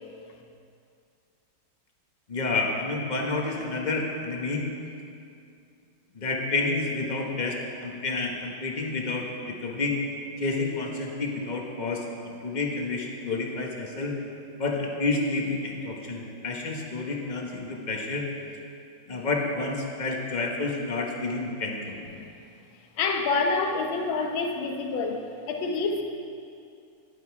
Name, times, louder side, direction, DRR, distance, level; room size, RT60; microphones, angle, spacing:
voice 1, 2.3-4.6 6.1-9.9 10.4-14.2 14.6-18.3 19.1-21.9, left 3 dB, 25° left, 0 dB, 1.2 m, -29 dB
voice 2, 23.0-26.0, left 4 dB, 80° left, 3 dB, 1.8 m, -27 dB
12.5 x 11.0 x 4.7 m, 2.5 s
omnidirectional pair, 2.2 m